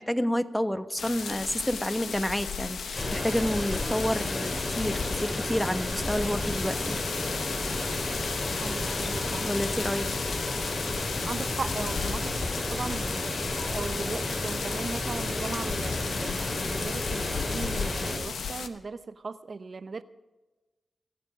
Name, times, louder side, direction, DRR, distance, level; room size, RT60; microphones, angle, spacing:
voice 1, 0.0-7.0 9.4-10.1, equal, 10° left, 10 dB, 1.2 m, -29 dB
sound 1, 1.0-18.7, left 6 dB, 85° left, 0.9 m, -35 dB
sound 2, 2.9-18.2, left 1 dB, 35° left, 4.7 m, -32 dB
sound 3, 8.3-14.0, left 1 dB, 60° left, 4.8 m, -44 dB
voice 2, 8.6-9.5 11.3-20.0, right 4 dB, 60° right, 13 dB, 0.8 m, -38 dB
26.5 x 9.1 x 5.1 m, 1.2 s
cardioid pair, 50°, 0 cm